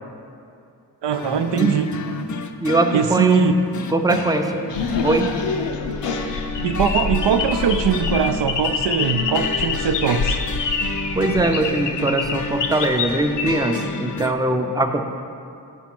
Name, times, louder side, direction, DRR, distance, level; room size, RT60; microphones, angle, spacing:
voice 1, 1.0-1.9 2.9-3.5 6.6-10.4, right 7 dB, 80° right, 9 dB, 0.5 m, -21 dB
sound 1, 1.1-14.3, left 4 dB, 45° left, 0.5 m, -31 dB
voice 2, 2.6-3.6 3.9-4.6 5.0-5.3 11.2-15.0, right 2 dB, 10° right, 5 dB, 0.5 m, -21 dB
sound 2, 4.7-13.5, left 5 dB, 90° left, 0.6 m, -26 dB
7.2 x 5.2 x 5.9 m, 2.5 s
wide cardioid pair, 75°, 41 cm